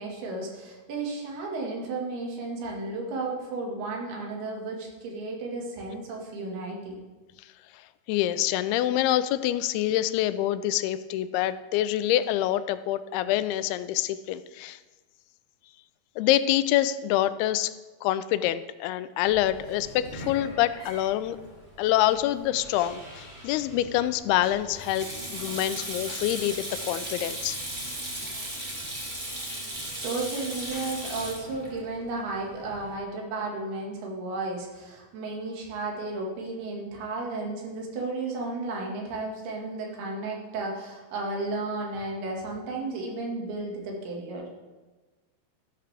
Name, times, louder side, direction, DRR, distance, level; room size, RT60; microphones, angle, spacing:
voice 1, 0.0-7.0 29.8-44.5, right 3 dB, 80° right, -1 dB, 3.9 m, -33 dB
voice 2, 8.1-14.8 16.2-17.7 18.0-21.4 21.8-27.6 27.8-28.0 28.5-28.6, left 13 dB, 90° left, 14 dB, 2.5 m, -26 dB
Sink (filling or washing), 19.2-32.9, right 1 dB, 65° right, 0.4 m, -38 dB
13.0 x 11.5 x 3.4 m, 1.2 s
omnidirectional pair, 4.4 m